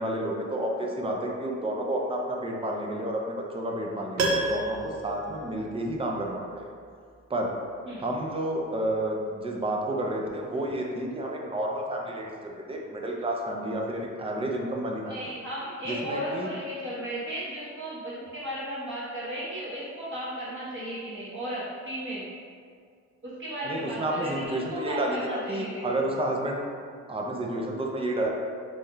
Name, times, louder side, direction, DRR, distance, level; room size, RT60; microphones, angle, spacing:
voice 1, 0.0-6.7 7.3-7.6 8.0-15.1 15.8-16.5 23.6-26.6 27.1-28.3, right 1 dB, 20° right, 0 dB, 0.4 m, -30 dB
Piano, 4.2-6.3 6.5-6.6, right 2 dB, 70° right, 0.6 m, -30 dB
voice 2, 15.1-22.2 23.2-25.9, equal, 40° right, -9 dB, 1.1 m, -35 dB
3.3 x 2.7 x 2.3 m, 2.1 s
cardioid pair, 90°, 30 cm